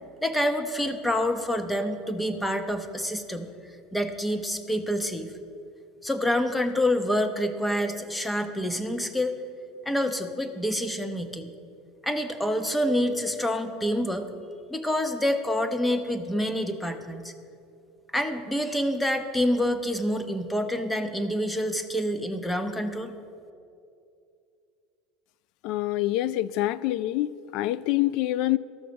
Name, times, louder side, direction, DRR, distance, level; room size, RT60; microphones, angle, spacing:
voice 1, 0.2-3.5 3.9-5.3 6.0-9.4 9.9-11.5 12.0-14.3 14.7-17.3 18.1-23.1, equal, 5° left, 0.8 m, -27 dB
voice 2, 25.6-28.6, left 15 dB, 60° left, 0.3 m, -26 dB
13.0 x 6.3 x 6.9 m
supercardioid pair, 130°, 0 cm